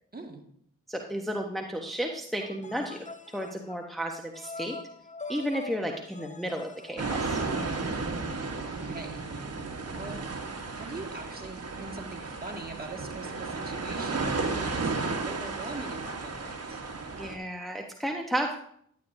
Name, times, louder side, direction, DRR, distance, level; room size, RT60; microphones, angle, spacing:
voice 1, 0.9-3.1 3.3-4.8 5.3-7.4 17.2-18.6, equal, ahead, 2 dB, 1.0 m, -33 dB
sound 1, 2.4-7.8, left 3 dB, 20° left, 0.7 m, -44 dB
sound 2, 7.0-17.4, right 3 dB, 50° right, 1.4 m, -33 dB
voice 2, 8.7-9.1 9.9-10.2 10.7-16.8, right 3 dB, 30° right, 1 dB, 2.0 m, -42 dB
11.0 x 8.6 x 2.7 m, 0.67 s
cardioid pair, 45°, 32 cm